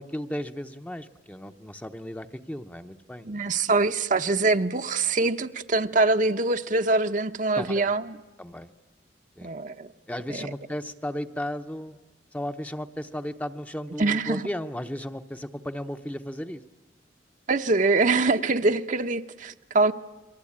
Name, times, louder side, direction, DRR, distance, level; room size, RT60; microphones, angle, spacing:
voice 1, 0.0-3.3 7.6-7.9 8.4-8.7 9.4-9.5 10.1-12.0 12.3-16.6, equal, 10° left, 7 dB, 0.8 m, -35 dB
voice 2, 3.2-8.2 9.4-9.9 10.3-10.5 14.0-14.5 17.5-19.9, right 3 dB, 45° right, 8 dB, 0.9 m, -24 dB
29.5 x 22.5 x 8.7 m, 1.1 s
head